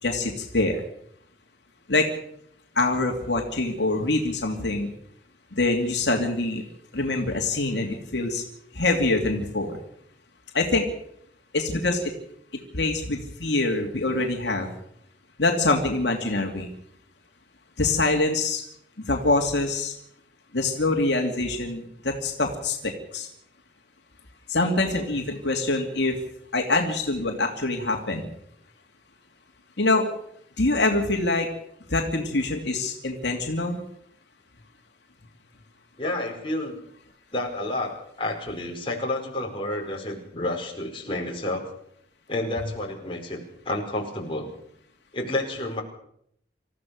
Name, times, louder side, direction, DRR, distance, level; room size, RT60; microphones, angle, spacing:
voice 1, 0.0-0.8 1.9-2.1 2.7-4.9 5.6-6.6 6.9-8.4 8.7-9.8 10.5-10.9 11.5-12.1 12.7-14.7 15.4-16.7 17.8-18.6 19.0-19.9 20.5-23.3 24.5-26.2 26.5-28.3 29.8-30.0 30.6-31.5 31.9-33.8, left 2 dB, 70° left, 2 dB, 2.8 m, -24 dB
voice 2, 36.0-36.8 37.3-41.7 42.3-44.5 45.1-45.8, left 1 dB, 30° left, 0 dB, 4.9 m, -30 dB
27.0 x 15.0 x 6.6 m, 0.71 s
head